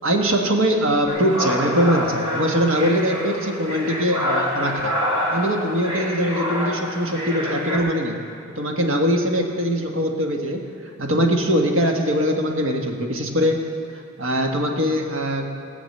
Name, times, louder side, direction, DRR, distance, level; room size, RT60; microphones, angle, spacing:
voice 1, 0.0-5.0 5.3-8.2 8.5-10.6 11.0-13.6 14.2-15.5, equal, 75° right, 2 dB, 1.5 m, -22 dB
sound 1, 1.1-7.8, left 1 dB, 20° right, 2.5 m, -26 dB
17.5 x 6.1 x 7.8 m, 2.6 s
head